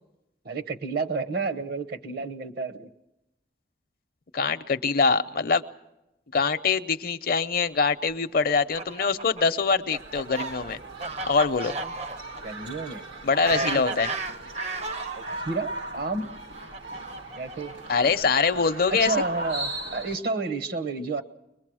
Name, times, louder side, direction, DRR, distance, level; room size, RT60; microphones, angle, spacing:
voice 1, 0.4-2.9 11.8-11.9 12.4-13.0 13.4-13.9 15.2-16.3 17.4-17.7 18.9-21.2, right 3 dB, 55° right, 8 dB, 1.0 m, -31 dB
voice 2, 4.3-5.6 6.3-10.8 11.3-11.7 13.2-14.1 17.9-19.2, left 5 dB, 55° left, 11 dB, 0.6 m, -24 dB
Fowl, 8.5-15.4 16.2-18.2, right 3 dB, 35° right, 0.7 m, -35 dB
sound 1, 10.0-20.2, right 1 dB, 85° right, 1.7 m, -38 dB
22.0 x 22.0 x 6.2 m, 0.94 s
head